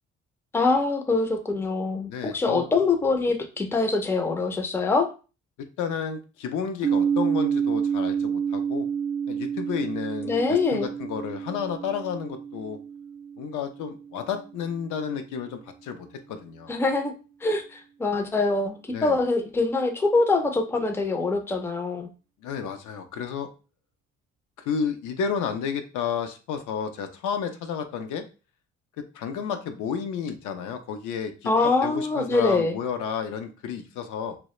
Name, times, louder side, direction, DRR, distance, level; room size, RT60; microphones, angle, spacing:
voice 1, 0.5-5.1 10.2-10.9 16.7-17.1 17.4-22.1 31.5-32.8, left 3 dB, 10° left, 5 dB, 0.3 m, -24 dB
voice 2, 2.1-2.7 5.8-8.9 9.3-12.8 13.4-16.7 18.9-19.2 22.4-23.5 24.6-28.2 29.0-34.4, left 7 dB, 80° left, 7 dB, 0.5 m, -31 dB
sound 1, 6.8-14.6, right 7 dB, 65° right, 0.4 m, -29 dB
2.3 x 2.0 x 2.9 m, 0.33 s
cardioid pair, 90°, 30 cm